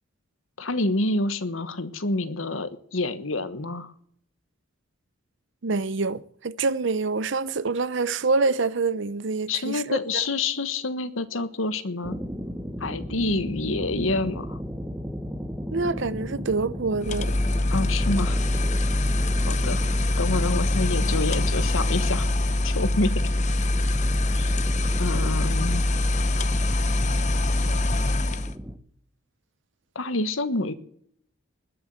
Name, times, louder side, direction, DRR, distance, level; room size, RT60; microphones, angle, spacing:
voice 1, 0.6-3.9 9.5-12.2 12.8-14.6 17.7-18.4 19.4-22.3 22.6-23.1 24.4-24.5 25.0-25.8 29.9-30.7, left 2 dB, 75° left, 1.4 m, -27 dB
voice 2, 5.6-10.2 15.7-17.3, right 3 dB, 60° right, 0.7 m, -26 dB
sound 1, 12.0-28.8, equal, 10° right, 1.1 m, -35 dB
sound 2, 17.0-28.6, left 2 dB, 35° left, 0.8 m, -24 dB
20.5 x 7.0 x 7.8 m
head